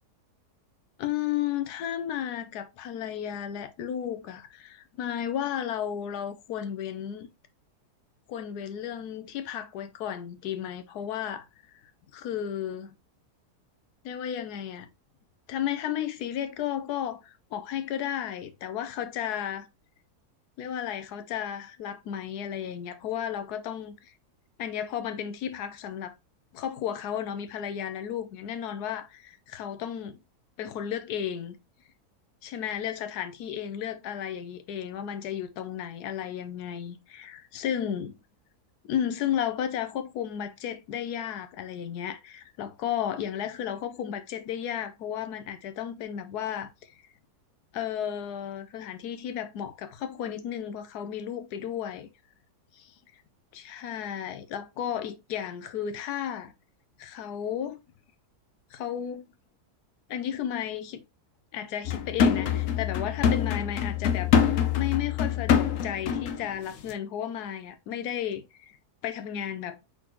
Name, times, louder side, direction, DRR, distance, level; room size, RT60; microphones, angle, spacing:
voice 1, 1.0-7.3 8.3-11.5 12.1-12.9 14.0-14.9 15.5-19.7 20.6-24.1 24.6-26.1 26.5-30.2 30.6-31.6 32.4-38.2 38.9-47.0 47.7-52.1 52.8-52.9 53.5-56.5 57.0-57.8 58.7-59.2 60.1-61.0 61.5-68.7 69.0-69.8, left 9 dB, 80° left, 1.2 m, -33 dB
sound 1, 61.8-66.5 66.8-66.9, left 8 dB, 65° left, 1.0 m, -25 dB
4.2 x 4.2 x 2.9 m
omnidirectional pair, 1.7 m